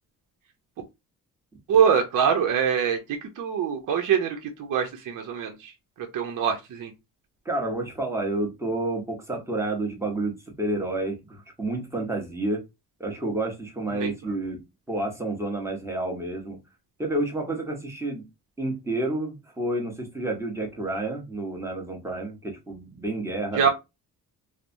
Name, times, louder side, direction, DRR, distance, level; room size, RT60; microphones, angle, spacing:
voice 1, 1.7-3.0 3.4-5.5 6.1-6.9 13.9-14.1 23.6-23.7, right 7 dB, 65° right, 0.7 m, -23 dB
voice 2, 7.4-12.6 13.0-14.6 14.9-16.6 17.0-18.3 18.6-23.7, right 2 dB, 10° right, 1.0 m, -30 dB
3.1 x 2.0 x 2.6 m
cardioid pair, 115°, 34 cm